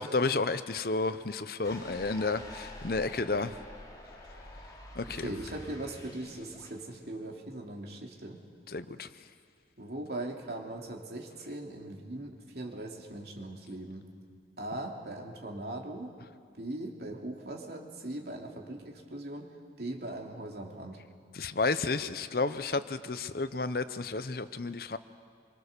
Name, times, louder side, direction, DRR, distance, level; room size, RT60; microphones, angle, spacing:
voice 1, 0.0-3.6 5.0-5.3 8.7-9.1 21.3-25.0, left 3 dB, 55° left, 12 dB, 0.8 m, -31 dB
sound 1, 1.6-6.7, left 1 dB, 20° left, 2.9 m, -47 dB
voice 2, 5.1-8.4 9.8-14.0 14.6-16.1 16.5-19.5 19.8-21.0, right 1 dB, 60° right, 1 dB, 2.9 m, -40 dB
26.0 x 24.0 x 6.8 m, 2.1 s
head